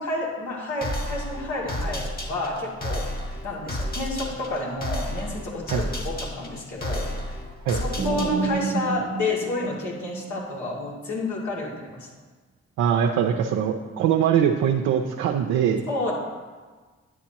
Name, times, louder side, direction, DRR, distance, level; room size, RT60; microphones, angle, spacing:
voice 1, 0.0-3.1 3.4-7.1 7.7-12.1 15.9-16.1, left 2 dB, 75° left, -4 dB, 2.5 m, -30 dB
sound 1, 0.8-8.7, left 1 dB, 30° left, 1.9 m, -32 dB
sound 2, 8.0-10.8, right 5 dB, 35° right, 0.7 m, -29 dB
voice 2, 12.8-15.8, right 8 dB, 90° right, 1 dB, 0.6 m, -22 dB
9.3 x 9.1 x 2.9 m, 1.4 s
supercardioid pair, 50°, 29 cm